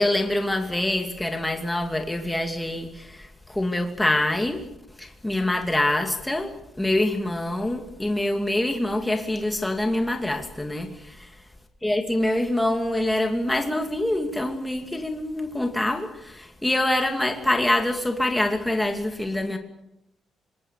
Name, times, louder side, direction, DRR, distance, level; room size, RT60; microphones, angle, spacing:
voice 1, 0.0-4.6 5.0-11.4 11.8-19.6, left 1 dB, 10° left, 4 dB, 2.7 m, -25 dB
25.5 x 20.5 x 6.8 m, 0.84 s
cardioid pair, 90°, 0 cm